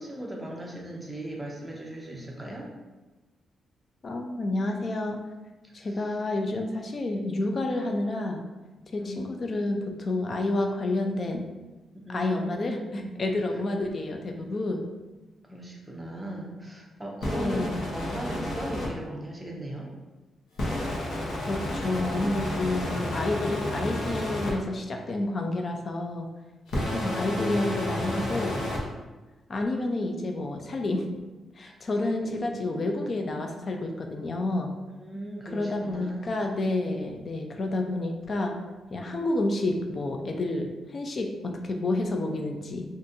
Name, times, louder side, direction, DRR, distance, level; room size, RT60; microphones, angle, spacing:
voice 1, 0.0-2.7 5.6-6.1 9.0-9.2 11.9-13.2 15.5-19.9 31.6-32.8 35.0-36.4, right 1 dB, 10° right, -2 dB, 0.6 m, -38 dB
voice 2, 4.0-5.2 5.7-8.4 8.9-11.5 12.1-14.8 17.3-17.8 21.4-26.3 26.7-28.5 29.5-31.1 31.6-34.7 35.5-38.6 38.9-42.8, left 2 dB, 35° left, 3 dB, 0.4 m, -29 dB
sound 1, 17.2-18.9 20.6-24.5 26.7-28.8, left 1 dB, 75° left, 0.9 m, -31 dB
3.8 x 2.5 x 2.6 m, 1.2 s
wide cardioid pair, 150°, 0 cm